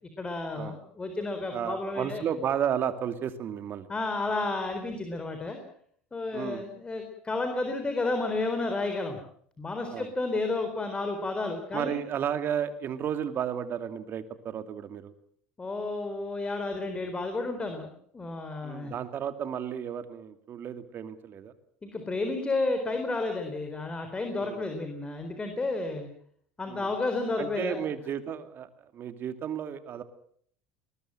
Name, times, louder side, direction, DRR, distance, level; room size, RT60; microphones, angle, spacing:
voice 1, 0.2-2.2 3.9-5.6 6.1-9.2 9.6-12.0 15.6-17.9 18.1-18.9 21.8-26.1 26.6-27.8, left 3 dB, 20° left, 6 dB, 4.0 m, -31 dB
voice 2, 1.5-3.9 6.3-6.6 9.9-10.1 11.7-15.1 18.6-21.5 24.4-24.6 26.7-26.9 27.4-30.0, right 9 dB, 45° right, 9 dB, 2.5 m, -33 dB
21.0 x 20.5 x 7.7 m, 0.62 s
hypercardioid pair, 85°, 5 cm